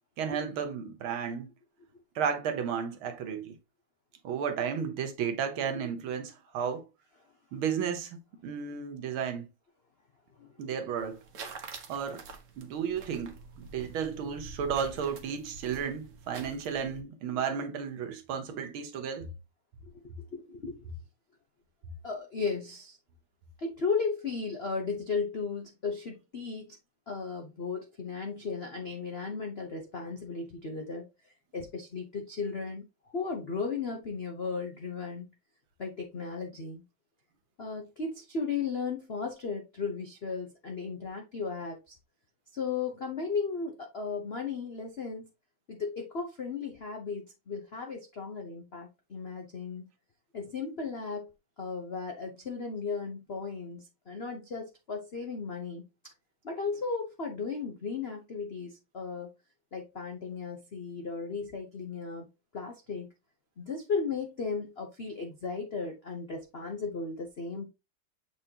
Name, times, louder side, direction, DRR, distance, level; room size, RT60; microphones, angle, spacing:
voice 1, 0.2-1.5 2.2-3.6 4.2-6.8 7.5-9.5 10.6-11.2 11.9-12.2 12.6-19.3, right 7 dB, 70° right, 1.8 m, -33 dB
voice 2, 10.4-10.8 19.8-20.9 22.0-23.0 23.6-26.8 27.1-32.8 33.1-35.3 35.8-36.8 37.6-42.0 42.5-45.3 45.7-49.9 50.3-51.3 51.6-55.8 56.4-59.3 59.7-62.2 62.5-63.1 63.6-67.6, left 4 dB, 60° left, 0.6 m, -35 dB
sound 1, 11.0-17.0, right 4 dB, 50° right, 1.0 m, -46 dB
7.5 x 4.4 x 2.8 m
omnidirectional pair, 2.4 m